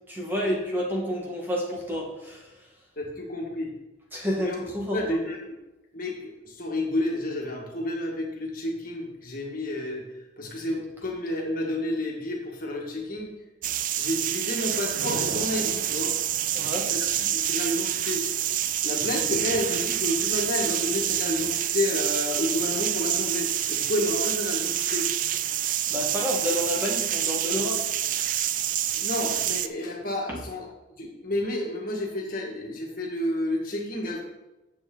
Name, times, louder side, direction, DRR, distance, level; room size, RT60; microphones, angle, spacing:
voice 1, 0.1-2.5 4.1-5.0 16.5-16.9 25.9-27.9, equal, 10° right, -3 dB, 1.6 m, -29 dB
voice 2, 3.0-3.7 4.4-5.6 5.9-10.1 10.4-13.3 14.0-16.2 16.9-18.2 18.8-25.4 28.9-34.2, left 1 dB, 45° left, -1 dB, 1.8 m, -30 dB
sound 1, 13.6-29.7, right 11 dB, 45° right, 0.4 m, -27 dB
9.4 x 7.4 x 3.9 m, 1.0 s
head